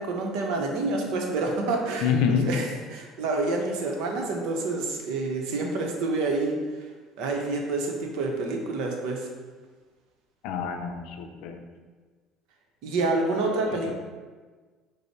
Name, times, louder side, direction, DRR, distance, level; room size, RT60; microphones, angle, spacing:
voice 1, 0.0-2.7 2.9-6.6 7.2-9.3 12.8-13.9, right 3 dB, 75° right, 1 dB, 0.7 m, -28 dB
voice 2, 2.0-2.5 10.4-11.6 13.7-13.9, left 7 dB, 75° left, 5 dB, 0.5 m, -27 dB
5.2 x 2.0 x 4.5 m, 1.4 s
supercardioid pair, 85°, 0 cm